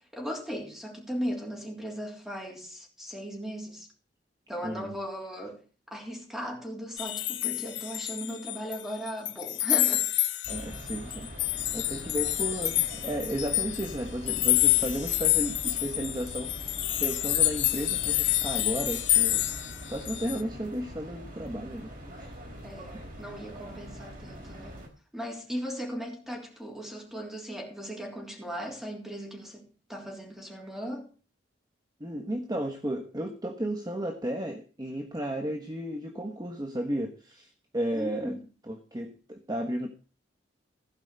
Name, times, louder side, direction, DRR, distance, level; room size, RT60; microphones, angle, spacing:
voice 1, 0.1-3.9 4.5-5.6 5.9-10.1 20.1-20.6 22.6-24.8 25.1-31.1 37.9-38.4, equal, 5° right, 3.3 m, -37 dB
voice 2, 4.6-5.0 10.5-11.3 11.7-19.4 19.8-22.3 32.0-38.4 38.7-39.9, right 1 dB, 20° right, 1.1 m, -34 dB
sound 1, 7.0-8.8 9.1-20.4, left 15 dB, 75° left, 1.1 m, -28 dB
sound 2, 10.4-24.9, equal, 50° right, 3.5 m, -43 dB
16.0 x 5.4 x 6.7 m
head